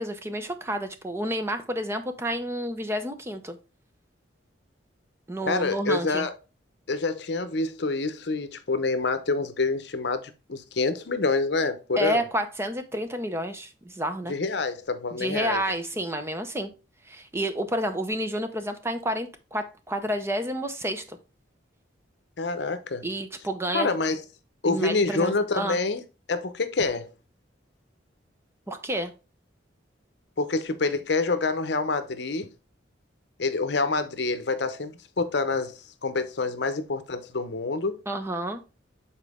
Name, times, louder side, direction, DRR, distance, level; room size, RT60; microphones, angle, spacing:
voice 1, 0.0-3.6 5.3-6.3 12.0-14.4 15.2-16.7 17.1-21.2 23.0-23.9 24.6-25.8 28.7-29.1 38.1-38.6, equal, 15° right, 0.6 m, -30 dB
voice 2, 5.5-6.3 6.9-12.2 14.3-15.6 22.4-23.0 23.7-24.2 24.6-26.0 26.3-27.1 30.4-32.5 33.4-35.7 36.0-38.0, left 3 dB, 60° left, 0.7 m, -27 dB
7.3 x 4.3 x 3.5 m
head